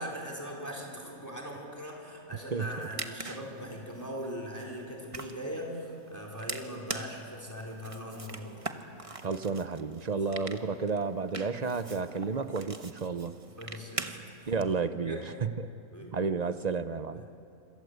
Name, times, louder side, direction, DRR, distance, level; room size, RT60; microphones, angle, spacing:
voice 1, 0.0-8.7 10.1-10.5 13.6-14.1 14.4-14.5 15.0-15.3 15.9-16.3 17.1-17.3, equal, 10° left, -1 dB, 4.3 m, -40 dB
voice 2, 2.5-2.9 9.2-13.4 14.5-15.5 16.1-17.3, right 5 dB, 45° right, 11 dB, 0.5 m, -31 dB
sound 1, 2.6-14.6, right 3 dB, 25° right, 1.1 m, -43 dB
27.0 x 26.0 x 8.2 m, 2.6 s
omnidirectional pair, 1.7 m